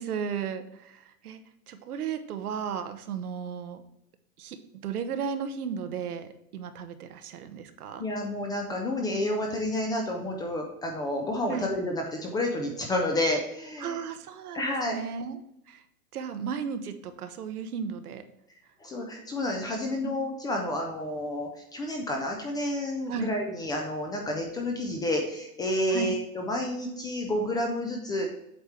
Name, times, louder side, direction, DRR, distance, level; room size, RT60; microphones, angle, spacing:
voice 1, 0.0-1.4 1.7-3.8 4.4-4.6 4.8-8.0 11.5-11.7 13.8-15.4 15.7-15.8 16.1-18.2 20.0-20.1 23.1-23.3 25.9-26.1, right 7 dB, 75° right, 9 dB, 1.0 m, -34 dB
voice 2, 8.0-14.0 14.5-15.0 18.8-28.3, left 1 dB, 10° left, 1 dB, 0.4 m, -30 dB
8.0 x 3.5 x 5.7 m, 0.79 s
hypercardioid pair, 120°, 46 cm